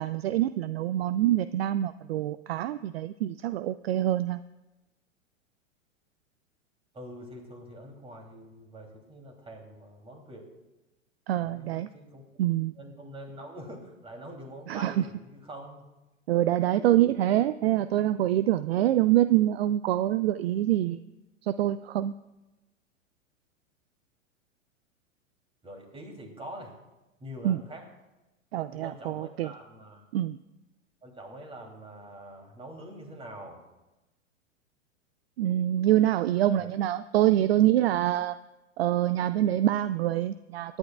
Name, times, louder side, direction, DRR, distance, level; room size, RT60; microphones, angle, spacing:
voice 1, 0.0-4.4 11.3-11.9 12.4-12.7 14.7-14.9 16.3-21.1 21.4-22.1 27.4-27.6 28.5-29.5 30.1-30.4 35.4-38.4 38.8-40.8, right 13 dB, 55° right, 14 dB, 0.5 m, -25 dB
voice 2, 6.9-10.5 11.4-12.2 12.7-15.8 16.8-17.0 25.6-26.8 27.2-27.8 28.7-30.1 31.0-33.6 36.4-36.7, right 1 dB, 15° right, 2 dB, 2.8 m, -44 dB
22.5 x 10.5 x 2.3 m, 1.0 s
figure-of-eight pair, 100°, 38 cm